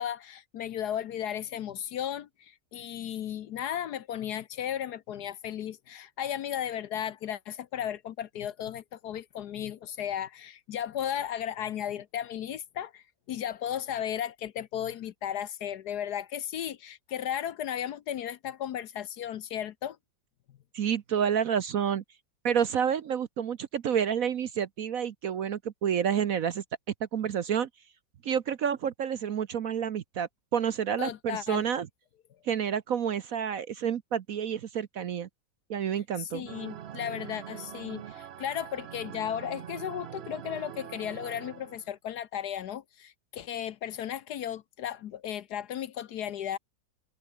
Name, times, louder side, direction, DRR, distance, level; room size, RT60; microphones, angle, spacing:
voice 1, 0.0-20.0 31.0-31.6 36.2-46.6, left 10 dB, 65° left, 1.2 m, -35 dB
voice 2, 20.7-22.0 22.4-26.6 27.0-27.7 28.2-31.9 32.4-35.3 35.7-36.5, right 8 dB, 60° right, 1.1 m, -29 dB
sound 1, 36.5-41.9, right 10 dB, 90° right, 0.5 m, -43 dB
omnidirectional pair, 2.0 m